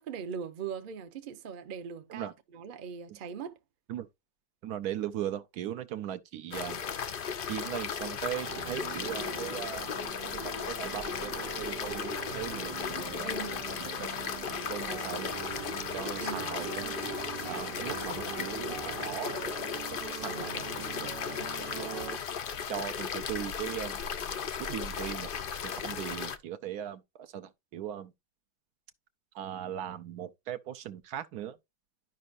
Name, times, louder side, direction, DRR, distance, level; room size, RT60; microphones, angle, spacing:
voice 1, 0.0-3.6 13.2-13.6 16.2-16.5 20.3-20.7 21.3-21.5, right 7 dB, 50° right, 0.6 m, -40 dB
voice 2, 4.6-6.8 7.5-9.9 10.2-13.3 13.8-15.3 15.9-16.9 17.5-19.6 20.1-21.1 21.6-22.0 22.7-24.2 24.6-25.3 25.6-28.1 29.3-31.6, right 11 dB, 70° right, 1.1 m, -39 dB
sound 1, 6.5-26.4, left 7 dB, 70° left, 0.5 m, -36 dB
sound 2, 8.5-22.2, right 12 dB, 90° right, 1.2 m, -43 dB
12.0 x 5.2 x 2.5 m
omnidirectional pair, 1.8 m